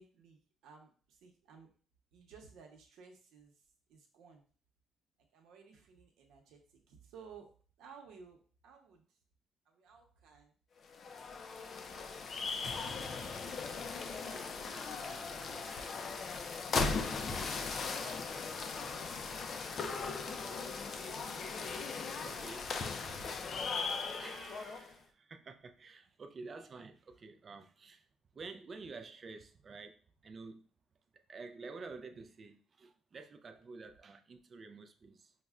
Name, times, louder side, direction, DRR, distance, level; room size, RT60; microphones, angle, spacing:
voice 1, 0.0-1.7 2.1-3.5 3.9-4.4 5.3-7.5 7.8-9.1 9.7-10.5 11.2-11.5 11.9-12.2 14.1-16.7 17.7-23.0, right 5 dB, 80° right, 0.8 m, -59 dB
sound 1, 10.8-24.9, left 4 dB, 40° left, 0.4 m, -38 dB
voice 2, 22.2-22.7 24.2-28.1 28.3-30.7 31.1-35.3, right 4 dB, 35° right, 0.3 m, -50 dB
5.3 x 2.1 x 2.4 m
cardioid pair, 140°, 0 cm